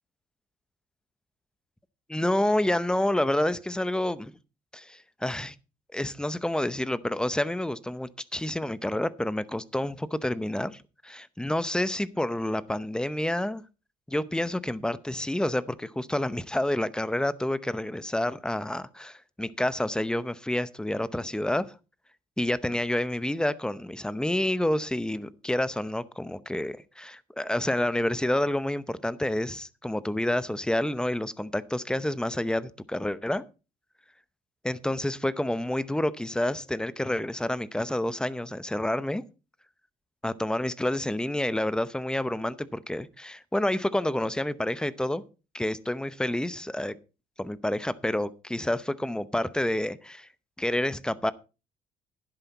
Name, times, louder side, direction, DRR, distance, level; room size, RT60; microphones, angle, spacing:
voice 1, 2.1-4.3 4.7-5.6 5.9-13.6 14.1-21.7 22.4-33.4 34.6-39.2 40.2-45.2 45.5-47.0 47.4-50.3 50.6-51.3, left 1 dB, 5° left, 0.7 m, -29 dB
12.0 x 10.5 x 4.1 m
cardioid pair, 110°, 17 cm